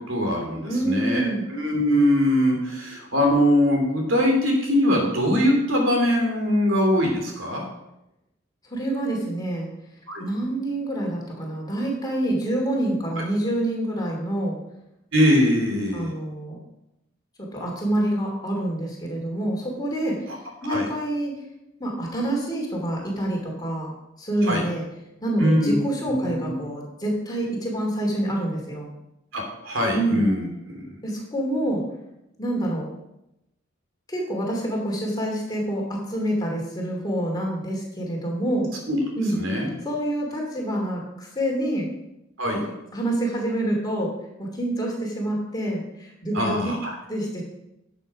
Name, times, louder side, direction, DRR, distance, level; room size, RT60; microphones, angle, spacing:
voice 1, 0.1-7.6 10.1-10.2 15.1-16.1 20.7-20.9 24.4-24.6 25.4-25.8 26.0-26.2 29.3-30.9 38.9-39.0 39.3-39.7 42.4-42.6 46.3-46.9, equal, 70° right, 0 dB, 3.1 m, -22 dB
voice 2, 0.7-1.5 8.6-9.7 10.2-14.6 15.9-16.6 17.4-20.2 20.6-21.4 21.8-23.9 24.2-24.8 25.2-28.9 29.9-30.2 31.0-31.8 32.4-32.9 34.1-38.7 39.2-39.4 39.8-41.9 42.5-42.7 42.9-44.1 44.4-46.7 47.1-47.4, right 1 dB, 20° left, -1 dB, 2.6 m, -27 dB
12.0 x 6.9 x 5.0 m, 0.87 s
head